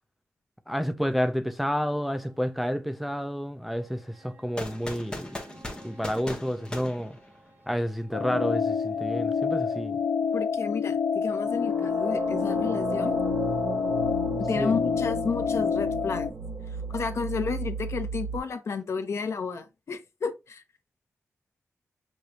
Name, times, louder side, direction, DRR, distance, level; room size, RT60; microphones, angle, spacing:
voice 1, 0.7-5.3 5.8-7.2 7.7-10.0 14.6-14.7, equal, ahead, 0.4 m, -30 dB
sound 1, 4.6-7.7, left 1 dB, 15° left, 1.1 m, -38 dB
sound 2, 5.0-6.3 11.4-18.4, right 3 dB, 40° right, 1.3 m, -35 dB
sound 3, 8.1-16.3, left 6 dB, 75° left, 0.5 m, -28 dB
voice 2, 10.3-13.2 14.5-16.3 16.9-20.6, left 5 dB, 60° left, 0.9 m, -32 dB
6.5 x 3.1 x 2.7 m
wide cardioid pair, 140°, 5 cm